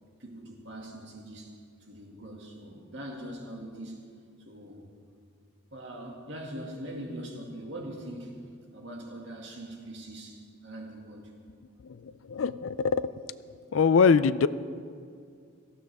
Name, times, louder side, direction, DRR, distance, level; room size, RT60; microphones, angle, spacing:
voice 1, 0.2-4.1 4.5-4.9 5.7-8.4 8.7-11.3 12.1-12.2, right 1 dB, 60° right, 0 dB, 2.2 m, -42 dB
voice 2, 11.8-13.1 13.7-14.5, left 5 dB, 75° left, 16 dB, 0.4 m, -23 dB
18.0 x 15.0 x 3.6 m, 2.3 s
head